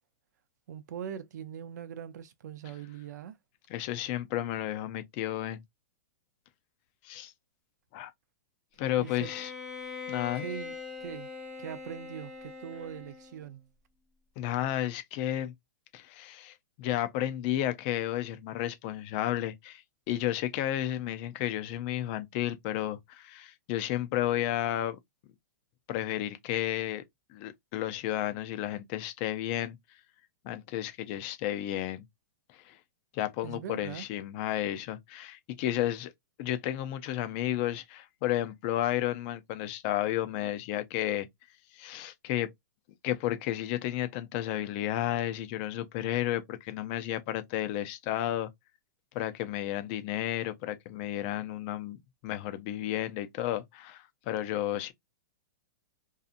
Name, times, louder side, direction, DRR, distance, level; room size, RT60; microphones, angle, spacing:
voice 1, 0.7-3.4 9.0-9.3 10.4-11.3 11.6-13.7 33.4-34.1, right 9 dB, 70° right, 0.5 m, -41 dB
voice 2, 3.7-5.6 7.0-7.3 7.9-8.1 8.8-9.5 10.1-10.5 14.4-15.5 15.9-25.0 25.9-27.0 27.3-29.8 30.4-32.0 32.5-32.8 33.1-36.1 36.4-41.3 41.7-42.5 43.0-48.5 49.1-52.0 52.2-54.9, left 12 dB, 35° left, 0.5 m, -32 dB
Bowed string instrument, 9.0-13.4, left 5 dB, 5° right, 0.7 m, -42 dB
2.7 x 2.4 x 2.4 m
hypercardioid pair, 155°, 10 cm